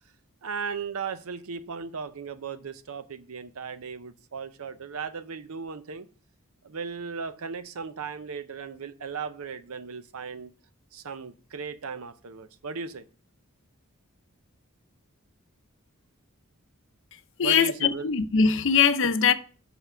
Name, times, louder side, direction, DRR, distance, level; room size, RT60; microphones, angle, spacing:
voice 1, 0.4-6.1 6.6-10.5 10.9-13.1 17.4-18.1, right 5 dB, 75° right, 0.6 m, -36 dB
voice 2, 17.4-19.3, left 6 dB, 55° left, 0.6 m, -21 dB
6.0 x 5.6 x 4.9 m
head